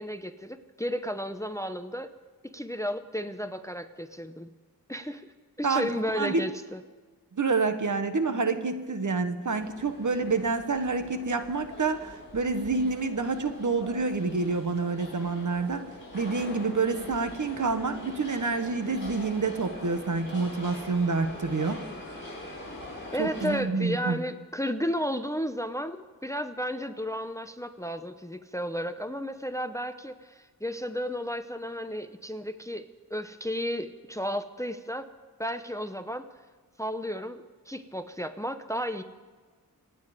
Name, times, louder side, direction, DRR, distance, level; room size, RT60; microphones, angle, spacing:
voice 1, 0.0-2.1 2.4-4.5 4.9-5.3 5.6-6.8 23.1-35.1 35.4-36.2 36.8-39.0, equal, 10° left, 10 dB, 0.7 m, -33 dB
voice 2, 7.3-15.8 16.1-21.8 23.2-24.2, right 4 dB, 55° right, 8 dB, 1.2 m, -28 dB
sound 1, 9.5-23.6, left 2 dB, 30° left, 6.3 m, -43 dB
27.0 x 9.4 x 5.1 m, 1.4 s
wide cardioid pair, 100°, 36 cm